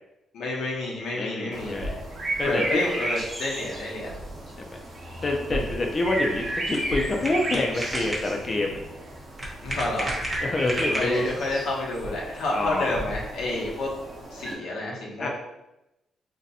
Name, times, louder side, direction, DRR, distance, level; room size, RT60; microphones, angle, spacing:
voice 1, 0.3-1.8 2.4-4.2 9.6-10.2 10.8-13.9 14.3-15.3, left 2 dB, 85° left, -3 dB, 0.9 m, -29 dB
voice 2, 1.1-2.0 2.4-2.9 4.6-4.8 5.2-8.8 10.4-11.3 12.5-13.0 15.2-15.3, left 2 dB, 35° left, 0 dB, 0.4 m, -27 dB
sound 1, 1.5-14.5, right 1 dB, 45° right, 0.8 m, -33 dB
sound 2, 6.0-11.4, right 1 dB, 15° right, 0.8 m, -35 dB
2.6 x 2.2 x 4.0 m, 0.92 s
cardioid pair, 115°, 0 cm